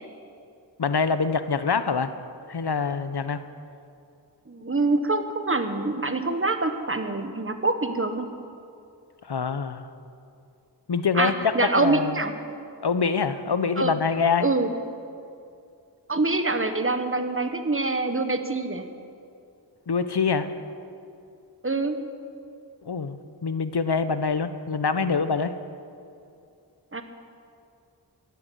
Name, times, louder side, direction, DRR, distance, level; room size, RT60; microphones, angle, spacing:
voice 1, 0.8-2.1 2.5-3.4 9.3-9.9 10.9-12.2 12.8-14.5 19.9-20.5 22.8-23.2 23.4-25.5, left 5 dB, 65° left, 11 dB, 0.9 m, -25 dB
voice 2, 4.5-8.3 11.1-12.3 13.8-13.9 14.4-14.7 16.1-18.8 21.6-22.0 26.9-27.0, right 3 dB, 30° right, 7 dB, 1.3 m, -25 dB
15.0 x 10.5 x 8.4 m, 2.5 s
wide cardioid pair, 45°, 42 cm